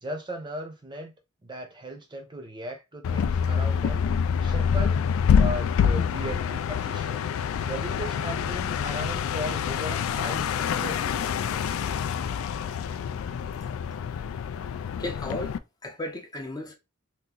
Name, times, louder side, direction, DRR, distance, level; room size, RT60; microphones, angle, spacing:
voice 1, 0.0-1.1 1.4-4.1 4.4-7.2 7.6-11.8, right 1 dB, 20° right, 0.7 m, -37 dB
sound 1, 3.0-15.6, left 7 dB, 75° left, 0.3 m, -26 dB
voice 2, 15.0-16.7, left 1 dB, 20° left, 0.5 m, -35 dB
2.9 x 2.5 x 3.8 m
head